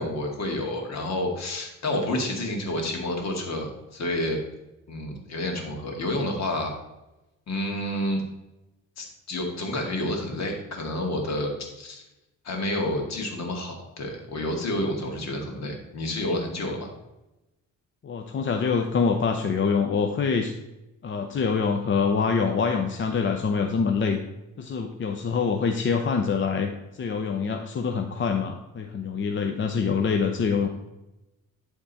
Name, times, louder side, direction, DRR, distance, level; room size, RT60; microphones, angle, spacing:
voice 1, 0.0-4.4 4.9-6.7 7.5-8.2 9.0-12.0 12.4-16.9, left 1 dB, 60° left, 2 dB, 2.0 m, -29 dB
voice 2, 18.0-20.5 21.0-24.2 24.6-26.7 27.0-30.7, left 5 dB, 40° left, 5 dB, 0.7 m, -25 dB
11.0 x 3.7 x 4.1 m, 0.97 s
cardioid pair, 90°, 30 cm